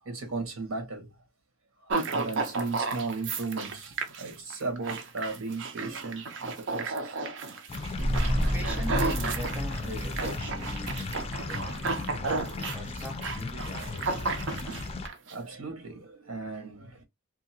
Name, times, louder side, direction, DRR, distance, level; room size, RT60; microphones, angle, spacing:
voice 1, 0.0-1.1 1.8-7.6 8.3-8.4 13.8-13.9 14.3-14.6 15.2-17.0, right 3 dB, 90° right, 1.2 m, -37 dB
sound 1, 1.9-15.3, right 4 dB, 65° right, 0.6 m, -33 dB
sound 2, 7.7-15.1, left 3 dB, 30° left, 0.4 m, -37 dB
sound 3, 7.9-12.5 12.8-12.9, equal, 25° right, 0.5 m, -31 dB
voice 2, 8.5-11.6 12.2-14.2, equal, 10° right, 0.9 m, -41 dB
2.7 x 2.4 x 2.7 m
head